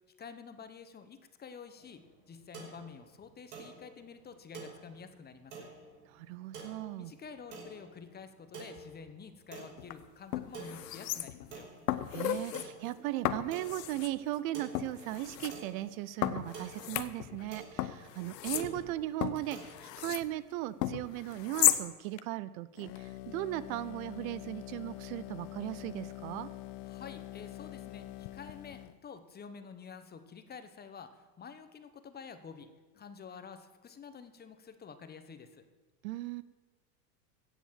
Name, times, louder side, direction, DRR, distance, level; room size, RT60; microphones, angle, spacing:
voice 1, 0.2-5.7 7.0-11.7 26.8-35.6, left 6 dB, 20° left, 9 dB, 1.0 m, -49 dB
sound 1, 1.8-20.5, right 4 dB, 80° right, 5.7 m, -51 dB
voice 2, 6.1-7.1 12.1-26.5 36.0-36.4, right 15 dB, 60° right, 17 dB, 0.7 m, -37 dB
sound 2, 9.8-9.9 10.3-11.5 11.9-12.7 13.2-14.1 14.7-15.5 16.2-17.5 17.8-20.3 20.8-21.8 22.2-22.3, left 14 dB, 85° left, 1.0 m, -34 dB
sound 3, 22.8-29.0, left 15 dB, 50° left, 0.6 m, -45 dB
16.5 x 7.2 x 7.5 m, 1.3 s
supercardioid pair, 120°, 47 cm